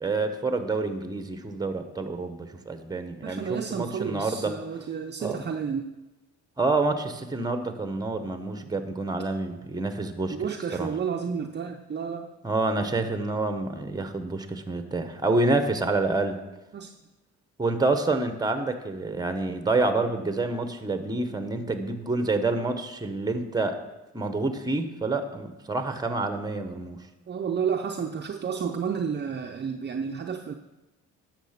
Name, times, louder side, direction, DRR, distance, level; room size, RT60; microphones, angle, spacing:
voice 1, 0.0-4.5 5.2-5.4 6.6-10.3 10.7-10.9 12.4-16.4 17.6-23.8 24.1-27.0, right 3 dB, 15° right, 8 dB, 1.2 m, -28 dB
voice 2, 3.2-5.9 10.3-12.3 16.7-16.9 27.3-30.5, right 6 dB, 35° right, 4 dB, 0.7 m, -31 dB
10.0 x 6.7 x 5.9 m, 1.0 s
cardioid pair, 90°, 30 cm